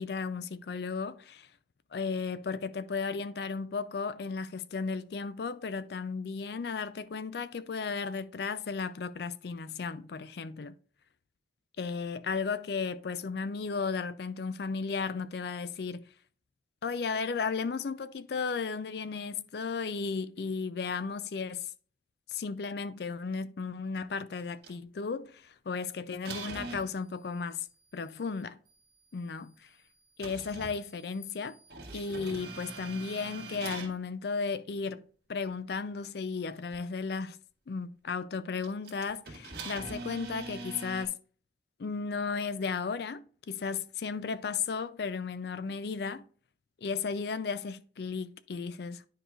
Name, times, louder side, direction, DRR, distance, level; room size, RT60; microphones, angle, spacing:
voice 1, 0.0-1.5 1.9-10.8 11.8-16.0 16.8-21.7 22.3-27.7 27.9-28.6 29.1-29.7 30.2-31.6 31.9-35.0 35.3-37.4 37.7-41.2 41.8-46.3 46.8-49.1, left 5 dB, 60° left, 0.4 m, -34 dB
sound 1, 24.4-24.7 26.2-26.9 30.2-33.9 36.7-36.8 38.6-41.1, right 3 dB, 65° right, 1.7 m, -43 dB
10.0 x 4.7 x 2.4 m
head